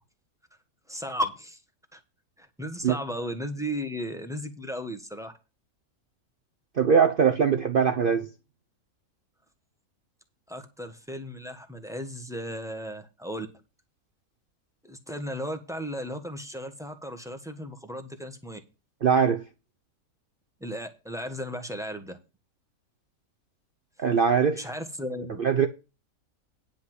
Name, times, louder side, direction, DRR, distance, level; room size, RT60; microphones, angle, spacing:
voice 1, 0.9-1.6 1.9-2.0 2.4-5.3 10.5-13.5 14.8-18.6 20.6-22.2 24.5-25.4, equal, ahead, 1.3 m, -35 dB
voice 2, 6.8-8.3 19.0-19.4 24.0-24.6 25.4-25.7, right 6 dB, 45° right, 0.8 m, -21 dB
10.0 x 5.7 x 6.2 m
omnidirectional pair, 1.5 m